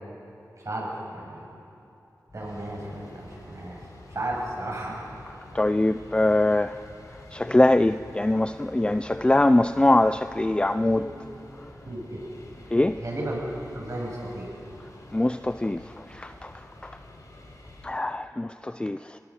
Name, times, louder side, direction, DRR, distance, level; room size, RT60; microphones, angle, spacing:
voice 1, 0.6-1.4 2.3-3.8 4.1-4.9 11.0-11.1 11.9-12.2 13.0-13.4 13.7-14.5, right 1 dB, 50° right, -3 dB, 7.6 m, -33 dB
sound 1, 2.3-17.9, left 1 dB, 60° left, 5.1 m, -48 dB
voice 2, 5.5-6.8 7.3-11.1 12.7-13.0 15.1-17.0 17.8-19.2, left 1 dB, 15° left, 11 dB, 0.4 m, -23 dB
26.0 x 20.0 x 6.5 m, 2.8 s
wide cardioid pair, 80°, 7 cm